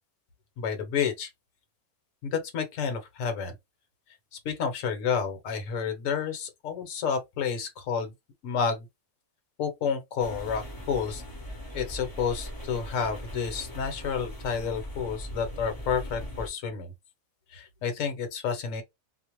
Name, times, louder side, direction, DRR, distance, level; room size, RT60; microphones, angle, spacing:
voice 1, 0.6-1.3 2.2-3.5 4.4-8.1 8.4-8.9 9.6-11.2 11.7-16.9 17.5-18.8, left 6 dB, 65° left, 1.1 m, -30 dB
sound 1, 10.2-16.5, equal, 20° left, 0.5 m, -40 dB
2.5 x 2.1 x 2.9 m
omnidirectional pair, 1.6 m